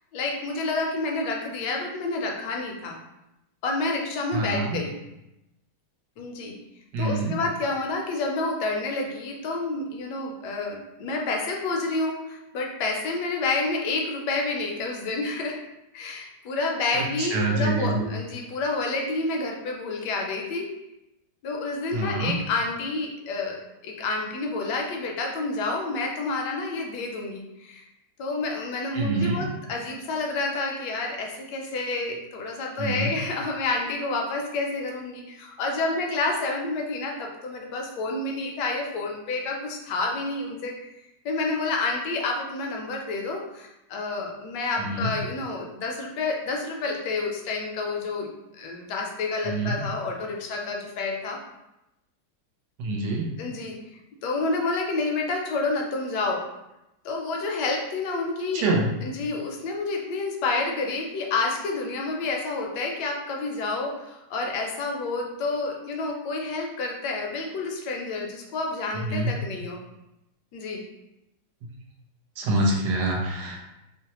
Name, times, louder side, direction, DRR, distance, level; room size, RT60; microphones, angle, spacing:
voice 1, 0.1-3.0 3.6-4.9 6.2-6.6 7.0-15.6 15.9-20.7 21.4-27.8 28.2-40.7 41.2-48.3 48.5-51.4 53.4-53.8 54.2-56.4 57.0-58.6 59.0-69.8 70.5-70.8, left 3 dB, 75° left, 1 dB, 1.1 m, -29 dB
voice 2, 4.3-4.8 6.9-7.4 16.9-18.0 21.9-22.4 28.9-29.4 32.8-33.1 44.8-45.1 49.4-49.8 52.8-53.3 58.5-58.9 68.9-69.3 72.4-73.6, right 2 dB, 75° right, -1 dB, 1.2 m, -26 dB
3.1 x 2.0 x 2.8 m, 0.91 s
omnidirectional pair, 1.9 m